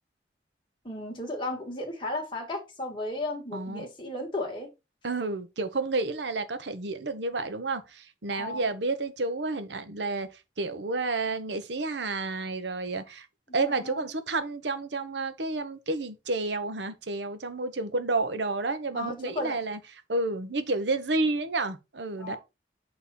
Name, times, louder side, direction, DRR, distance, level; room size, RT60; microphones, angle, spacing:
voice 1, 0.8-4.7 8.3-8.7 13.5-14.1 18.9-19.6 22.2-22.4, left 1 dB, 25° left, 2.1 m, -35 dB
voice 2, 3.5-3.8 5.0-10.3 10.6-13.3 13.5-19.8 20.1-22.4, right 3 dB, 85° right, 1.0 m, -30 dB
6.8 x 4.2 x 4.3 m
head